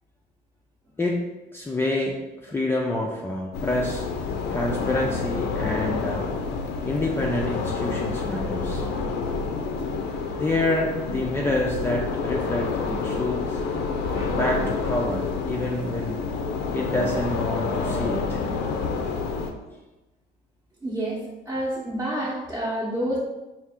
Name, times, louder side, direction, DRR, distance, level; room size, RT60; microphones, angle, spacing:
voice 1, 1.0-4.0 4.5-6.3 6.9-9.0 10.4-13.7 14.3-16.2 16.7-18.4, left 1 dB, 15° left, -2 dB, 0.4 m, -27 dB
sound 1, 3.5-19.5, left 4 dB, 85° left, 0.5 m, -28 dB
voice 2, 20.8-21.2 21.5-23.2, right 1 dB, 20° right, -8 dB, 0.8 m, -28 dB
4.4 x 2.4 x 3.5 m, 1.1 s
cardioid pair, 110°, 17 cm